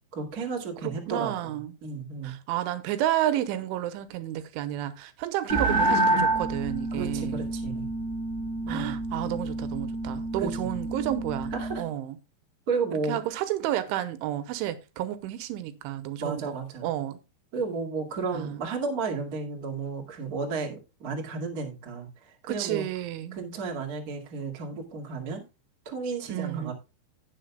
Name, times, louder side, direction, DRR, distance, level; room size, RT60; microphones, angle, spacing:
voice 1, 0.1-2.3 6.9-7.9 8.6-9.0 10.4-10.7 11.5-11.8 12.7-13.2 16.2-16.9 17.5-22.9 23.3-25.4 25.8-26.7, right 4 dB, 60° right, 0.9 m, -33 dB
voice 2, 0.8-1.8 2.2-7.4 8.7-12.2 13.1-17.2 18.3-18.6 22.5-23.4 26.3-26.7, right 13 dB, 90° right, 3.2 m, -31 dB
sound 1, 5.5-11.9, right 2 dB, 10° right, 2.7 m, -28 dB
17.0 x 6.6 x 2.2 m
omnidirectional pair, 5.5 m